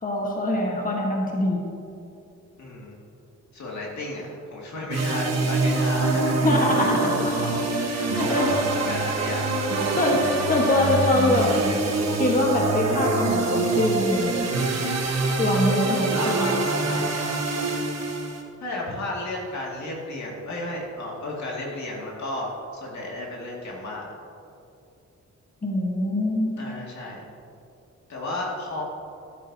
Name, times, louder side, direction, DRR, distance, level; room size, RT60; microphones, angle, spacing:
voice 1, 0.0-1.6 6.4-8.5 9.9-11.5 11.8-14.4 15.4-16.6 25.6-26.5, left 1 dB, 30° left, -1 dB, 1.5 m, -24 dB
voice 2, 2.6-2.9 3.5-9.6 9.9-10.1 16.1-17.7 18.6-24.1 26.6-27.3 28.1-28.8, left 1 dB, 70° left, -3 dB, 2.4 m, -33 dB
sound 1, 4.9-18.4, right 3 dB, 60° right, 1.5 m, -25 dB
13.0 x 12.0 x 2.9 m, 2.6 s
cardioid pair, 90°, 29 cm